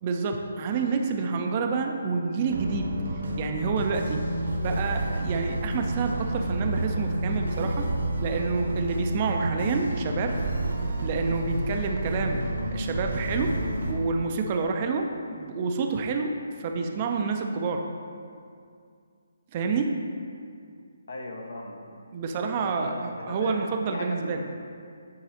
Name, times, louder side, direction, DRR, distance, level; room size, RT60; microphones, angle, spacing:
voice 1, 0.0-2.9 3.4-4.3 4.5-7.9 8.2-10.4 11.0-12.4 12.7-13.6 13.9-17.9 19.5-20.0 22.1-24.5, right 4 dB, 35° right, 3 dB, 0.5 m, -28 dB
sound 1, 2.5-13.9, right 1 dB, 70° right, 1.1 m, -30 dB
voice 2, 21.1-21.8 22.5-24.6, left 2 dB, 70° left, 0 dB, 1.0 m, -38 dB
9.0 x 3.9 x 2.8 m, 2.3 s
figure-of-eight pair, 145°, 0 cm